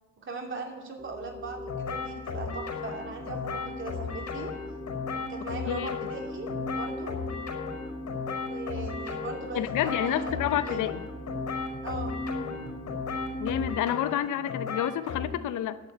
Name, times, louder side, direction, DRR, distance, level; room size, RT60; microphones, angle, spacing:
voice 1, 0.2-4.5 5.1-7.2 8.4-10.8 11.8-12.2, right 3 dB, 40° right, 1 dB, 2.9 m, -39 dB
sound 1, 1.0-13.7, left 1 dB, 10° left, 2.6 m, -39 dB
sound 2, 1.7-15.3, left 5 dB, 65° left, 5.0 m, -36 dB
voice 2, 5.7-6.0 9.5-11.0 13.4-15.8, left 11 dB, 85° left, 13 dB, 0.7 m, -29 dB
11.0 x 7.4 x 9.3 m, 1.3 s
cardioid pair, 90°, 30 cm